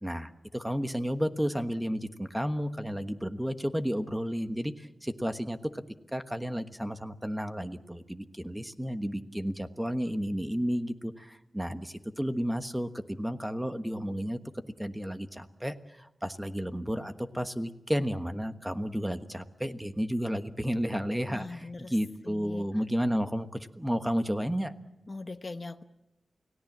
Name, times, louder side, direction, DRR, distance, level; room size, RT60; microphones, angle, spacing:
voice 1, 0.0-5.8 6.1-14.4 14.8-24.7, equal, 5° right, 9 dB, 1.3 m, -32 dB
voice 2, 21.3-21.9 22.2-22.6 25.1-25.8, left 3 dB, 35° left, 9 dB, 1.0 m, -40 dB
29.5 x 17.5 x 7.4 m, 0.89 s
wide cardioid pair, 105°, 0 cm